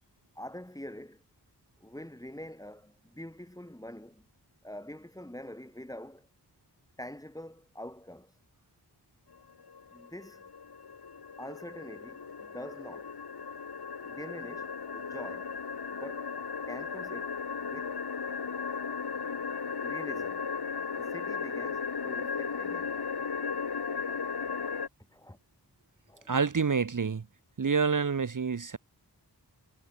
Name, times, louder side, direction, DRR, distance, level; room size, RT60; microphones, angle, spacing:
voice 1, 0.4-1.2 1.8-4.3 4.6-6.3 7.0-8.3 9.9-10.4 11.4-13.2 14.0-15.5 15.9-16.3 16.7-18.0 19.8-20.5 20.9-23.0 25.1-25.4 26.1-26.3, left 1 dB, 10° left, 2.0 m, -45 dB
sound 1, 9.3-24.9, left 5 dB, 65° left, 1.8 m, -36 dB
voice 2, 26.3-27.2 27.6-28.8, right 5 dB, 50° right, 1.1 m, -27 dB
wide cardioid pair, 55°, 41 cm